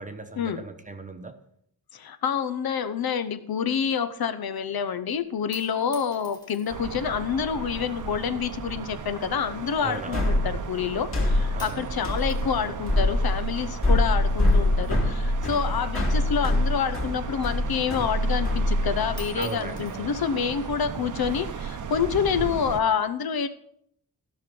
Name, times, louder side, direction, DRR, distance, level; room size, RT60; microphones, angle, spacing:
voice 1, 0.0-1.4 9.8-10.5 11.5-12.0 19.3-20.2, right 3 dB, 20° right, 0.9 m, -37 dB
voice 2, 1.9-23.5, left 7 dB, 70° left, 0.8 m, -28 dB
sound 1, 5.3-7.0 7.8-8.3 9.1-10.5 10.8-11.2 11.6-15.7 15.9-17.6 18.0-18.1 18.4-18.8 19.1-20.9 21.7-22.3, left 1 dB, 10° left, 1.8 m, -51 dB
sound 2, 6.7-22.8, right 6 dB, 55° right, 0.8 m, -36 dB
sound 3, 10.1-19.2, left 1 dB, 35° left, 2.4 m, -24 dB
15.0 x 6.1 x 5.3 m
wide cardioid pair, 155°, 38 cm